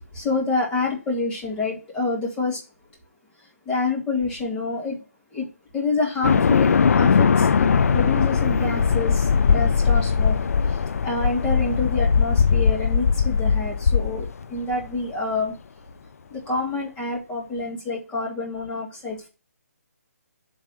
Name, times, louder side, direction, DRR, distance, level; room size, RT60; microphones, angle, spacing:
voice 1, 0.2-2.6 3.7-5.0 5.3-5.5 5.7-10.4 11.0-14.3 14.5-15.5 16.3-19.3, left 3 dB, 10° left, 2.1 m, -27 dB
sound 1, 6.2-14.7, left 6 dB, 65° left, 0.4 m, -20 dB
7.5 x 3.4 x 6.3 m
hypercardioid pair, 160°, 9 cm